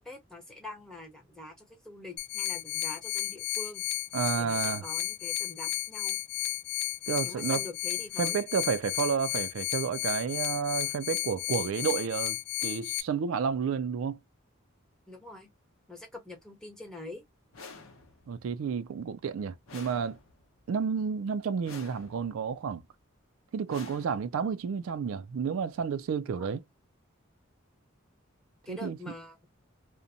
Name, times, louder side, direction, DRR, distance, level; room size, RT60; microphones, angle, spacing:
voice 1, 0.0-3.8 4.4-6.2 7.2-8.4 15.1-15.5 15.9-17.2 26.3-26.6 28.7-29.4, left 2 dB, 5° left, 0.9 m, -45 dB
sound 1, 2.2-13.0, left 14 dB, 50° left, 0.4 m, -33 dB
voice 2, 4.1-4.9 7.1-7.6 8.2-14.2 18.3-20.2 20.7-22.8 23.5-26.6 28.7-29.0, right 6 dB, 75° right, 0.3 m, -31 dB
sound 2, 17.5-18.4 19.7-20.6 21.6-22.4 23.7-24.6, left 4 dB, 75° left, 0.8 m, -49 dB
2.6 x 2.1 x 2.6 m
head